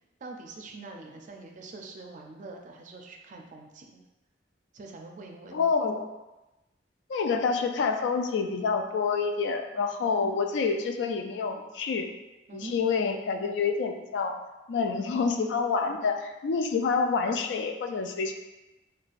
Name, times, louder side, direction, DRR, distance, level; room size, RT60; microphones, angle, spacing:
voice 1, 0.2-4.0 4.7-5.6 10.1-10.4 12.5-12.7, right 3 dB, 45° right, 2 dB, 0.4 m, -44 dB
voice 2, 5.5-6.1 7.1-12.1 12.5-14.4 14.7-18.3, left 5 dB, 85° left, 5 dB, 0.3 m, -27 dB
3.9 x 2.2 x 2.5 m, 1.0 s
head